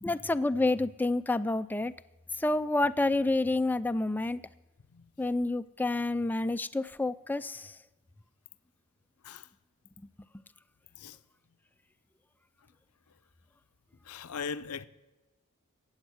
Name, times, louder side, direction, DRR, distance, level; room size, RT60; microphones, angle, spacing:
voice 1, 0.0-1.9 2.3-4.4 5.2-7.8, left 2 dB, 10° left, 0.3 m, -29 dB
voice 2, 14.0-14.9, left 6 dB, 80° left, 0.6 m, -39 dB
15.5 x 8.8 x 6.3 m
head